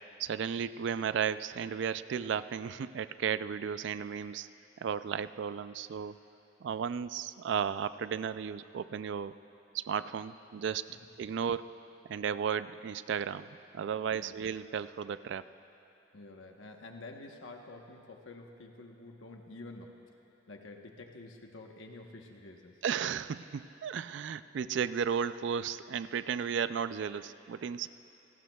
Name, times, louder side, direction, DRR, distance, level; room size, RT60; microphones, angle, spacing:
voice 1, 0.2-4.5 4.8-6.2 6.6-9.3 9.7-10.9 11.2-11.7 12.1-13.5 13.7-15.4 22.8-27.9, right 7 dB, 65° right, 14 dB, 0.3 m, -34 dB
voice 2, 16.1-20.0 20.5-22.8, left 2 dB, 85° left, 2 dB, 1.1 m, -49 dB
29.0 x 18.5 x 2.3 m, 3.0 s
head